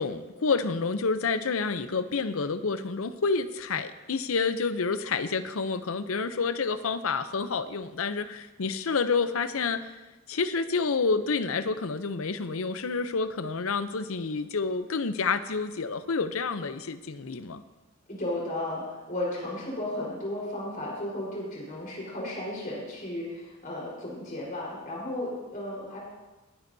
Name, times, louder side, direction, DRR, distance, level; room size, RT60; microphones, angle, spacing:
voice 1, 0.0-9.9 10.3-17.6, left 4 dB, 70° left, 11 dB, 0.6 m, -29 dB
voice 2, 18.1-26.0, left 1 dB, 40° left, -4 dB, 4.4 m, -34 dB
20.0 x 9.8 x 2.7 m, 1.1 s
head